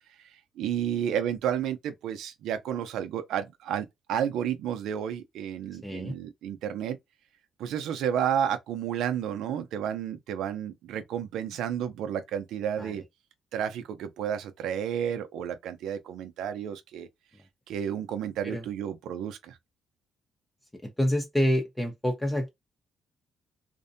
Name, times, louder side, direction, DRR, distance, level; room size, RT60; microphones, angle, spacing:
voice 1, 0.6-7.0 7.6-13.0 13.5-17.1 17.7-19.6, right 9 dB, 85° right, 0.5 m, -31 dB
voice 2, 5.8-6.1 12.8-13.0 18.4-18.6 20.8-22.5, equal, 10° left, 0.6 m, -27 dB
2.6 x 2.1 x 2.5 m
cardioid pair, 90°, 0 cm